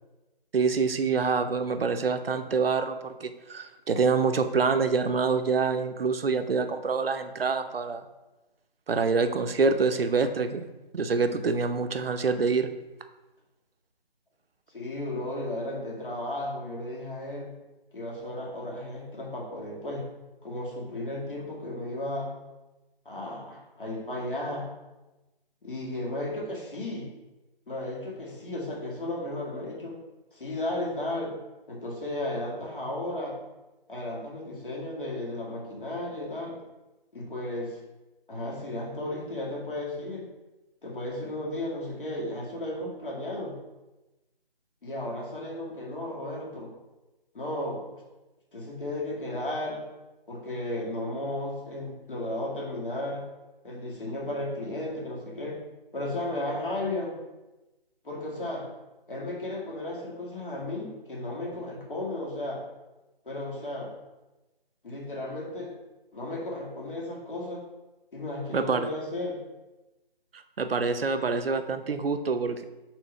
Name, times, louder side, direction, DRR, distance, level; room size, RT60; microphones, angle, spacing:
voice 1, 0.5-8.0 8.9-10.6 10.9-12.7 68.5-68.9 70.6-72.6, right 4 dB, 75° right, 8 dB, 0.7 m, -26 dB
voice 2, 14.7-17.5 17.9-20.1 20.4-22.3 23.1-24.7 25.6-27.1 27.7-30.0 30.3-31.4 31.7-33.4 33.9-36.6 37.1-37.8 38.3-40.3 40.8-43.6 44.8-46.7 47.3-48.0 48.5-49.9 50.3-53.3 53.6-55.6 55.9-57.2 58.0-58.7 59.1-62.6 63.3-63.9 64.8-65.7 66.1-67.6 68.1-69.4, left 1 dB, 60° left, -3 dB, 2.0 m, -34 dB
4.5 x 3.9 x 5.4 m, 1.1 s
figure-of-eight pair, 175°, 30 cm